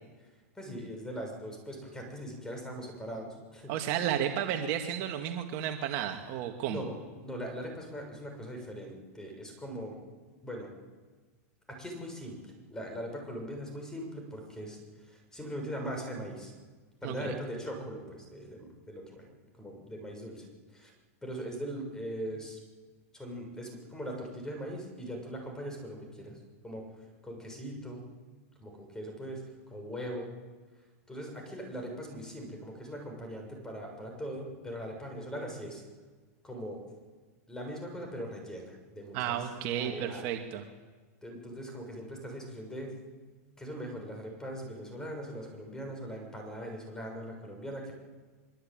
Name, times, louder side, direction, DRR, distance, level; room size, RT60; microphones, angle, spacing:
voice 1, 0.5-4.0 6.6-7.0 7.2-9.9 10.4-10.7 11.7-16.5 17.0-19.3 19.6-20.4 20.7-20.9 21.2-22.6 23.1-26.4 26.6-26.8 27.2-28.0 28.6-29.4 29.7-30.3 31.1-35.8 36.4-36.8 37.5-39.5 39.8-40.3 41.2-42.9 43.6-47.9, equal, 5° left, 3 dB, 6.8 m, -40 dB
voice 2, 3.7-6.8 17.0-17.3 39.1-40.6, right 10 dB, 45° right, 4 dB, 2.2 m, -32 dB
24.0 x 23.5 x 9.0 m, 1.4 s
supercardioid pair, 145°, 9 cm